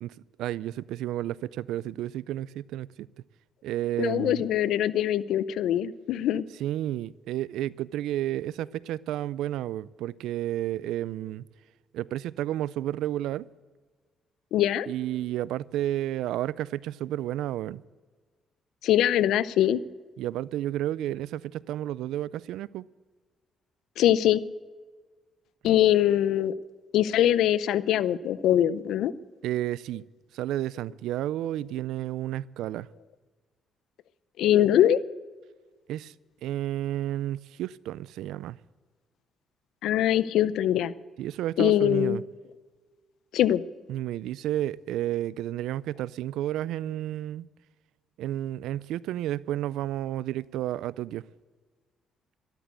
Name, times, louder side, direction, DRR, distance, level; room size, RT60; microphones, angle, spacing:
voice 1, 0.0-3.1 3.6-4.4 6.6-11.5 11.9-13.5 14.9-17.8 20.2-22.8 29.4-30.0 30.3-32.9 35.9-36.1 36.4-38.6 41.2-42.2 43.9-47.5 48.2-51.2, right 13 dB, 90° right, 0.4 m, -31 dB
voice 2, 4.0-6.4 14.5-14.9 18.8-19.8 24.0-24.4 25.6-26.5 26.9-29.1 34.4-35.0 39.8-40.9 41.6-42.2 43.3-43.6, left 11 dB, 85° left, 0.6 m, -22 dB
13.0 x 12.5 x 8.1 m
cardioid pair, 90°, 0 cm